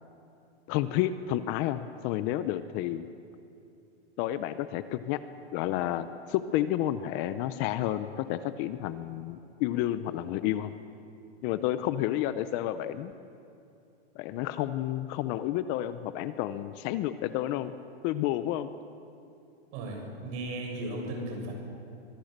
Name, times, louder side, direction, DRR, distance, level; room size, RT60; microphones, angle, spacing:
voice 1, 0.7-3.1 4.2-5.2 5.5-10.7 11.4-13.3 14.1-17.7 18.0-18.7, left 13 dB, 35° left, 12 dB, 0.8 m, -30 dB
voice 2, 19.7-21.5, right 1 dB, 45° right, 1 dB, 7.1 m, -36 dB
24.5 x 23.5 x 6.7 m, 2.6 s
supercardioid pair, 150°, 32 cm